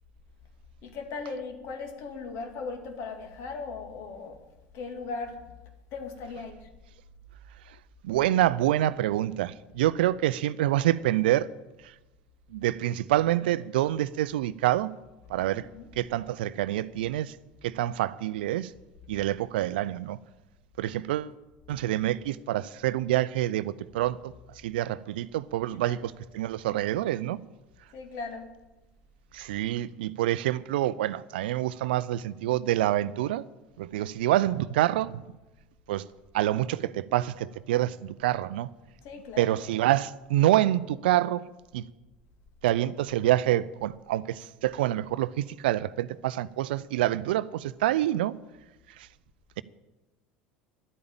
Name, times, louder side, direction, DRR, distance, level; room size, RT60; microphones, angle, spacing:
voice 1, 0.8-4.4 4.7-5.4 5.9-6.7 15.5-15.9 25.9-26.0 27.9-28.5 39.0-39.5, left 4 dB, 55° left, 2.4 m, -38 dB
voice 2, 8.0-11.5 12.5-14.9 15.3-15.7 16.0-17.3 17.6-18.7 19.1-20.2 20.8-21.3 21.7-24.3 24.6-27.4 29.3-33.4 33.8-35.2 35.9-36.0 36.3-38.7 39.4-41.4 41.7-41.9 42.6-48.3, right 14 dB, 70° right, 0.5 m, -27 dB
11.0 x 8.5 x 8.9 m
hypercardioid pair, 75°, 6 cm